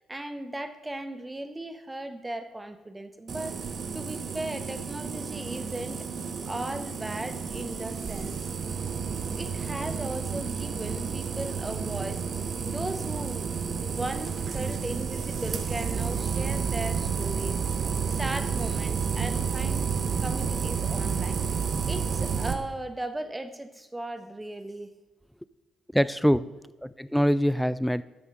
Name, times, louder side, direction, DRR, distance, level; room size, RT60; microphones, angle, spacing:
voice 1, 0.1-3.6 3.9-6.0 6.4-8.4 9.4-12.2 12.6-13.5 13.8-17.6 18.1-19.9 20.2-21.4 21.9-24.9, right 1 dB, 15° right, 9 dB, 1.2 m, -37 dB
sound 1, 3.3-22.5, right 6 dB, 50° right, 1.0 m, -31 dB
voice 2, 25.9-26.5 26.8-28.0, equal, 5° left, 16 dB, 0.4 m, -24 dB
12.5 x 7.7 x 3.9 m, 1.1 s
figure-of-eight pair, 40°, 0 cm